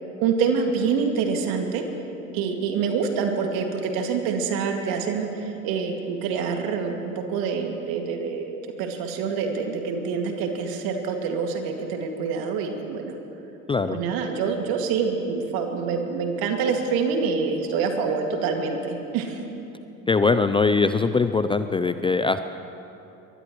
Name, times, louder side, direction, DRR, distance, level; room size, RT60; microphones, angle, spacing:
voice 1, 0.2-1.8 2.3-13.2 13.9-19.4, right 5 dB, 60° right, 3 dB, 2.3 m, -26 dB
voice 2, 20.1-22.4, left 4 dB, 15° left, 10 dB, 0.4 m, -21 dB
23.5 x 19.5 x 3.1 m, 2.9 s
hypercardioid pair, 65°, 40 cm